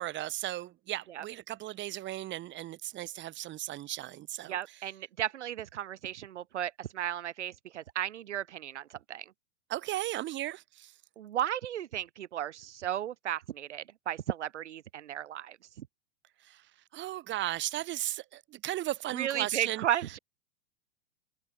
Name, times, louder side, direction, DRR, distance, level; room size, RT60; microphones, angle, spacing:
voice 1, 0.0-4.6 9.7-10.9 16.4-19.8, right 14 dB, 30° right, 2.4 m, -36 dB
voice 2, 4.5-9.2 11.2-15.9 19.1-20.2, right 11 dB, 75° right, 2.7 m, -34 dB
hypercardioid pair, 115°, 35 cm